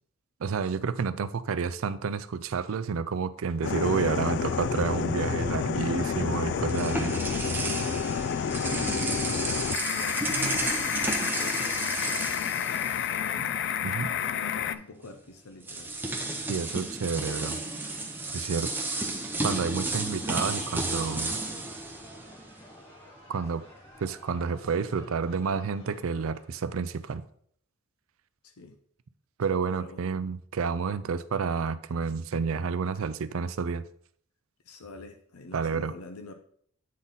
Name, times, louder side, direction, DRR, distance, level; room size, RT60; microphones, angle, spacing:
voice 1, 0.4-7.2 13.8-14.1 16.5-17.6 18.3-18.7 19.4-21.4 23.3-23.6 24.0-27.2 29.4-33.8 35.5-35.9, right 5 dB, 70° right, 0.4 m, -30 dB
sound 1, 3.6-14.8, left 7 dB, 50° left, 0.3 m, -30 dB
sound 2, 6.2-13.4 13.7-13.9 15.0-15.1 15.6-22.8, right 2 dB, 10° right, 0.7 m, -33 dB
voice 2, 9.8-10.9 11.3-13.6 14.2-15.9 28.4-28.8 29.8-30.1 34.6-36.3, left 2 dB, 90° left, 0.7 m, -44 dB
sound 3, 21.4-27.2, equal, 25° left, 1.6 m, -53 dB
8.5 x 3.9 x 4.0 m
head